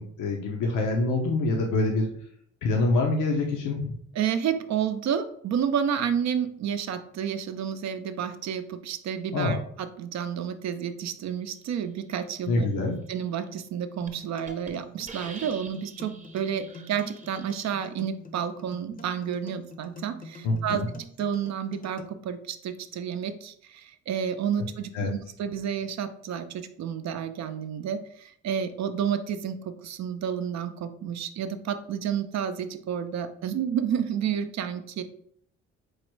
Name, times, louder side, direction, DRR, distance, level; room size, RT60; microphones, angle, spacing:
voice 1, 0.0-2.1 2.6-4.0 9.3-9.6 12.5-13.0 20.4-20.9 24.9-25.1, left 2 dB, 80° left, 1 dB, 0.7 m, -25 dB
voice 2, 4.2-12.7 13.1-20.8 21.2-35.0, right 8 dB, 65° right, 9 dB, 0.5 m, -30 dB
Hiss, 13.5-13.7 14.1-14.2 14.5-14.7 15.1-17.7, right 3 dB, 25° right, 0.8 m, -45 dB
sound 1, 14.0-22.0, left 1 dB, 30° left, 0.6 m, -46 dB
4.7 x 2.1 x 4.5 m, 0.65 s
cardioid pair, 90°, 30 cm